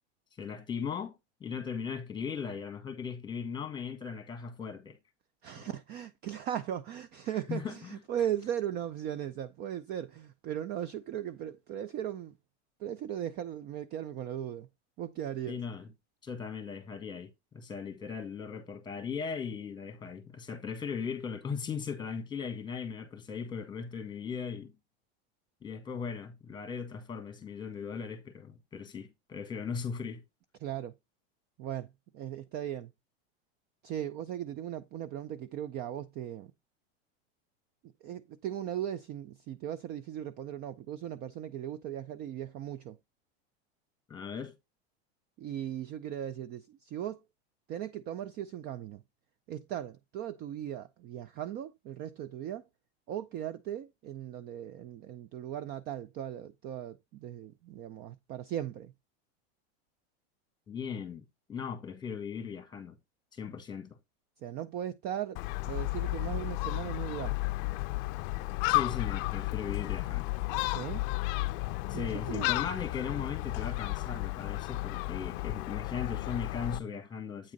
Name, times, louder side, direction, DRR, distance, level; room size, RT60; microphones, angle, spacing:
voice 1, 0.4-5.0 7.5-8.0 15.5-15.9 16.2-24.7 25.6-30.2 44.1-44.5 60.7-61.2 61.5-63.0 63.3-64.0 68.7-70.3 71.9-77.5, left 6 dB, 15° left, 1.6 m, -38 dB
voice 2, 5.4-12.3 12.8-14.7 15.0-15.6 30.6-31.0 31.6-32.9 33.8-36.5 38.0-43.0 45.4-47.2 47.7-49.0 49.5-52.6 53.1-58.9 64.4-67.4 70.7-71.1 71.9-72.5, right 10 dB, 30° right, 0.4 m, -38 dB
Gull seagull, 65.4-76.8, left 21 dB, 50° left, 0.5 m, -33 dB
8.7 x 3.6 x 5.1 m
supercardioid pair, 135°, 33 cm